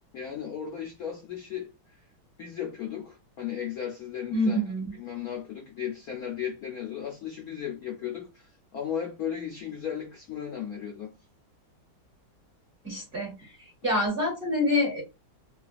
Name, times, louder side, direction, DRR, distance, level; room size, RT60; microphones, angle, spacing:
voice 1, 0.1-1.7 2.4-4.6 5.0-11.1, left 9 dB, 70° left, 0.9 m, -35 dB
voice 2, 4.3-4.9 12.8-13.5 13.8-15.0, left 1 dB, 35° right, 1.1 m, -26 dB
3.2 x 2.3 x 2.4 m
omnidirectional pair, 2.2 m